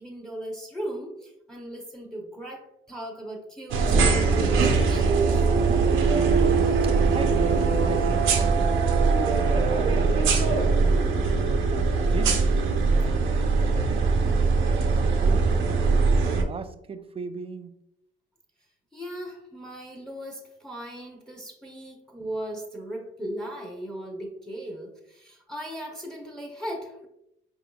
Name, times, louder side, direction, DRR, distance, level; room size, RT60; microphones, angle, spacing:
voice 1, 0.0-5.3 18.9-27.1, right 1 dB, 5° left, 1 dB, 0.8 m, -37 dB
sound 1, 3.7-16.4, right 4 dB, 80° right, 0.7 m, -21 dB
voice 2, 6.1-6.7 7.1-9.1 9.7-12.5 12.9-17.7, right 5 dB, 30° right, 10 dB, 0.4 m, -39 dB
4.6 x 3.5 x 2.3 m, 0.83 s
cardioid pair, 90°, 20 cm